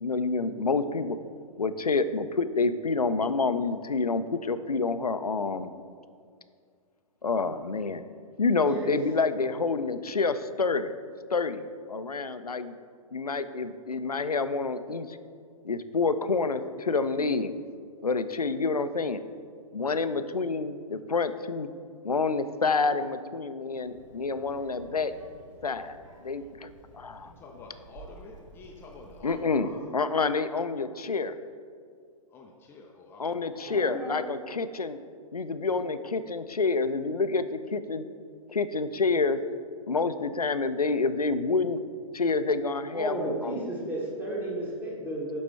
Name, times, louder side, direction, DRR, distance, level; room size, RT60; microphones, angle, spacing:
voice 1, 0.0-1.2 1.6-5.7 7.2-8.0 8.4-10.9 11.3-12.7 13.1-15.2 15.6-17.5 18.0-19.2 19.7-21.7 22.0-25.1 25.6-26.0 26.2-27.3 29.2-31.4 33.2-35.0 35.3-38.1 38.5-39.4 39.9-41.8 42.1-43.6, left 4 dB, 90° left, 11 dB, 0.4 m, -28 dB
voice 2, 8.7-9.1 33.5-34.4 42.9-45.4, right 1 dB, 10° right, -3 dB, 1.3 m, -34 dB
Child speech kid speaking, 23.8-29.4, right 3 dB, 55° right, 1.2 m, -53 dB
voice 3, 27.2-30.1 30.4-30.5 32.3-33.4, left 3 dB, 10° left, 1 dB, 0.4 m, -48 dB
10.5 x 4.2 x 3.3 m, 2.2 s
figure-of-eight pair, 115°, 19 cm